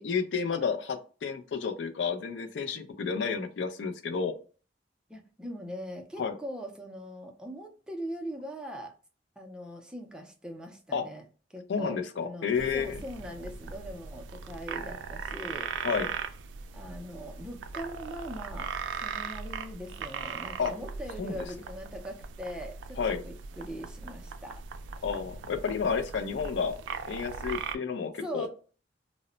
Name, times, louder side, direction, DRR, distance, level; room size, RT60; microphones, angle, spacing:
voice 1, 0.0-4.3 6.2-6.3 10.9-11.1 11.7-13.0 15.8-16.1 20.6-20.7 21.2-21.4 23.0-23.2 25.0-26.8 27.1-28.5, left 6 dB, 70° left, 8 dB, 0.4 m, -31 dB
voice 2, 5.1-8.9 9.4-11.2 11.5-15.7 16.7-18.7 19.0-24.6 28.2-28.5, equal, 5° right, 3 dB, 0.4 m, -41 dB
sound 1, 12.6-27.7, right 6 dB, 90° right, 0.3 m, -39 dB
2.0 x 2.0 x 3.6 m, 0.38 s
head